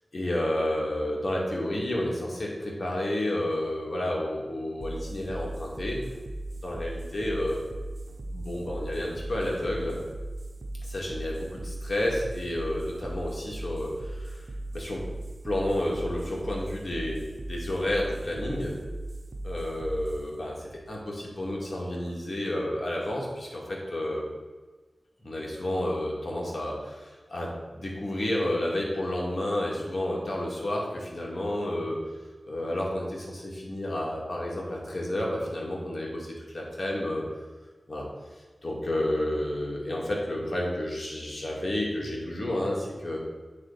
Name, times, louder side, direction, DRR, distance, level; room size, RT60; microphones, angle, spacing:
voice 1, 0.1-6.0 6.6-7.6 8.3-10.0 10.8-14.4 14.7-15.0 15.4-18.7 19.4-24.3 25.2-32.0 32.4-37.2 37.9-38.1 38.6-43.2, left 1 dB, 60° left, -2 dB, 2.3 m, -31 dB
sound 1, 4.8-21.8, right 1 dB, 60° right, 0.9 m, -38 dB
8.3 x 3.9 x 6.9 m, 1.3 s
cardioid pair, 45°, 0 cm